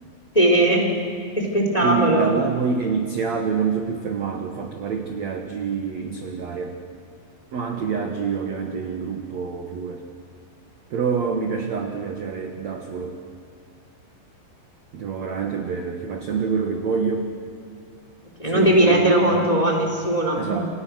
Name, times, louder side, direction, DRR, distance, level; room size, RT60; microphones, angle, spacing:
voice 1, 0.3-0.9 1.4-2.3 18.4-20.7, right 1 dB, 10° left, 1 dB, 2.8 m, -19 dB
voice 2, 1.8-6.8 7.5-10.0 10.9-13.1 14.9-17.3 18.4-19.6 20.4-20.7, right 6 dB, 65° right, 4 dB, 1.7 m, -26 dB
29.0 x 27.0 x 6.4 m, 2.2 s
omnidirectional pair, 5.5 m